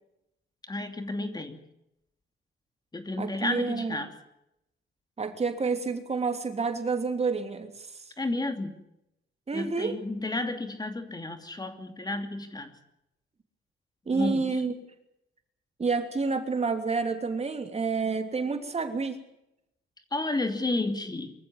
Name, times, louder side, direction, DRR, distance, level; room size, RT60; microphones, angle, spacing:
voice 1, 0.7-1.6 2.9-4.1 8.2-8.8 9.5-12.7 14.1-14.5 20.1-21.3, left 2 dB, 20° left, 8 dB, 2.7 m, -32 dB
voice 2, 3.2-4.0 5.2-8.0 9.5-10.0 14.1-14.7 15.8-19.2, right 4 dB, 30° right, 7 dB, 3.2 m, -29 dB
24.5 x 14.5 x 9.6 m, 0.84 s
cardioid pair, 90°, 20 cm